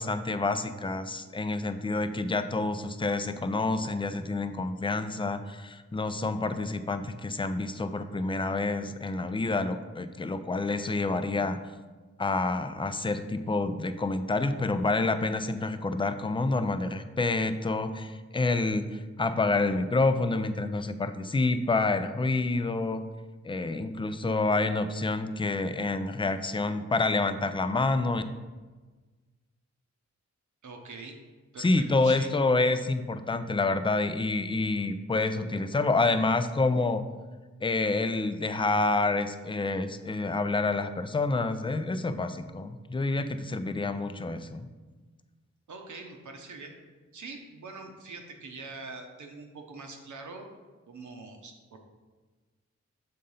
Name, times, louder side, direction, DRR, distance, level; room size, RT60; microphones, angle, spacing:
voice 1, 0.0-11.6 12.2-23.0 23.4-28.2 31.6-37.0 37.6-44.7, left 3 dB, 20° left, 10 dB, 0.4 m, -28 dB
voice 2, 30.6-31.2 31.5-32.3 45.7-46.7 47.1-50.5 50.9-51.8, right 3 dB, 85° right, 3 dB, 1.0 m, -43 dB
6.6 x 3.8 x 5.5 m, 1.3 s
wide cardioid pair, 105°, 29 cm